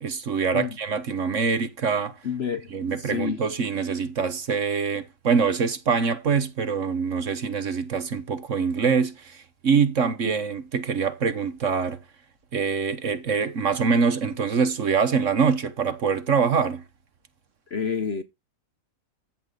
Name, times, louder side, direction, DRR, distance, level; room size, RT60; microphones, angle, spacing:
voice 1, 0.0-2.1 2.7-12.0 12.5-16.8, right 5 dB, 50° right, 1.4 m, -24 dB
voice 2, 2.2-2.7 3.0-3.4 17.7-18.2, left 6 dB, 50° left, 0.9 m, -28 dB
13.5 x 8.0 x 3.9 m
omnidirectional pair, 1.8 m